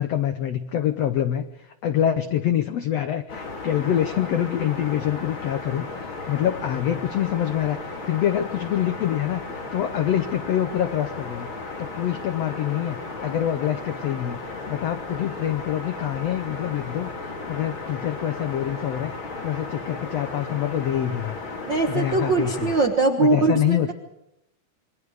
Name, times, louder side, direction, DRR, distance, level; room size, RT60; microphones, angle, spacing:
voice 1, 0.0-11.5 11.8-19.1 19.4-21.4 21.9-22.7 23.2-23.9, left 11 dB, 90° left, 9 dB, 1.4 m, -26 dB
sound 1, 3.3-22.9, left 3 dB, 35° left, 3.4 m, -35 dB
voice 2, 21.6-23.9, right 3 dB, 65° right, 4 dB, 1.1 m, -22 dB
27.0 x 22.5 x 4.9 m, 0.86 s
omnidirectional pair, 4.1 m